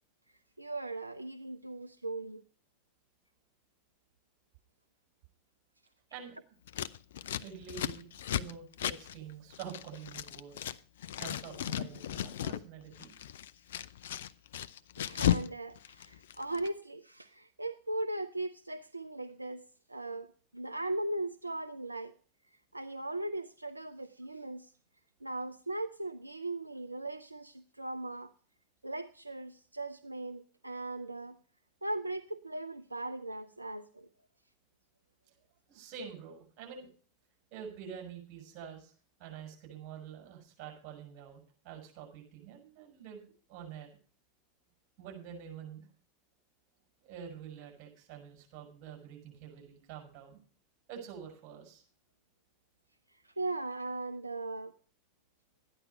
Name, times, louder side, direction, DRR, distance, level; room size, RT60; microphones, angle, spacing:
voice 1, 0.6-2.4 15.0-19.6 19.9-22.1 22.7-24.7 25.2-28.3 28.8-31.4 31.8-34.1 53.1-54.7, right 2 dB, 90° right, 10 dB, 0.5 m, -38 dB
Scissors, 6.7-10.8 11.0-12.6 12.9-15.5 15.8-16.7, left 11 dB, 65° left, 0.5 m, -35 dB
voice 2, 7.4-10.6 11.2-13.2 35.3-35.4 35.7-36.9 37.5-38.9 39.2-43.2 43.5-43.9 45.0-45.9 47.0-50.4 50.9-51.8, right 7 dB, 45° right, 1 dB, 6.4 m, -47 dB
13.0 x 10.0 x 5.4 m, 0.41 s
figure-of-eight pair, 85°, 0 cm